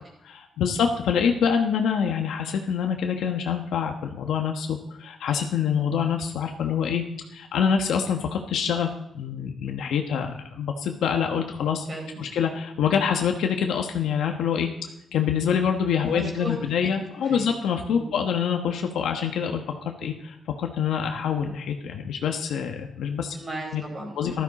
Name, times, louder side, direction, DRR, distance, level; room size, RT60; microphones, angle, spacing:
voice 1, 0.2-7.0 7.3-11.8 12.2-14.7 15.1-19.6 20.0-23.4 23.7-23.8 24.2-24.4, left 7 dB, 90° left, 3 dB, 1.2 m, -26 dB
voice 2, 11.9-12.2 16.0-16.5 17.2-17.5 17.9-18.1 23.3-24.2, right 1 dB, 30° right, 0 dB, 4.4 m, -36 dB
14.5 x 13.0 x 4.2 m, 0.78 s
cardioid pair, 135°, 0 cm